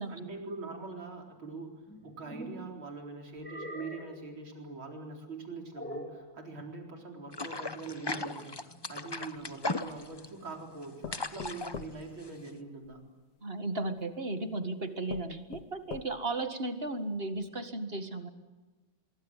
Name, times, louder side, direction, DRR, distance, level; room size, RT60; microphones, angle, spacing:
voice 1, 0.1-13.0, right 3 dB, 75° right, 2 dB, 5.0 m, -43 dB
sound 1, 1.9-2.7 3.4-4.3 5.7-6.3, equal, 5° left, 3.3 m, -42 dB
sound 2, 7.3-12.6, left 2 dB, 40° left, 0.3 m, -37 dB
knocking on door, 9.4-10.3 11.0-13.0 14.0-14.1 14.6-14.7 15.1-16.4 16.9-17.0 17.4-17.5, left 7 dB, 60° left, 1.7 m, -45 dB
voice 2, 13.4-18.3, right 2 dB, 30° right, 8 dB, 1.9 m, -35 dB
25.0 x 23.5 x 9.2 m, 1.2 s
omnidirectional pair, 2.2 m